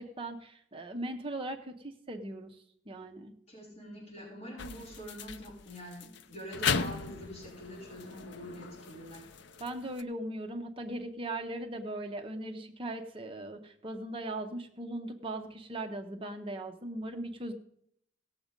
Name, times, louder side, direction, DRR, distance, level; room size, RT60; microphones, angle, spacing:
voice 1, 0.0-1.7 2.1-2.6 2.9-3.3 9.6-17.5, right 1 dB, 25° right, 5 dB, 0.7 m, -39 dB
voice 2, 3.5-9.3, equal, 30° left, -7 dB, 4.8 m, -45 dB
sound 1, 4.6-10.0, left 6 dB, 55° left, 0.5 m, -37 dB
17.0 x 7.2 x 5.1 m, 0.72 s
head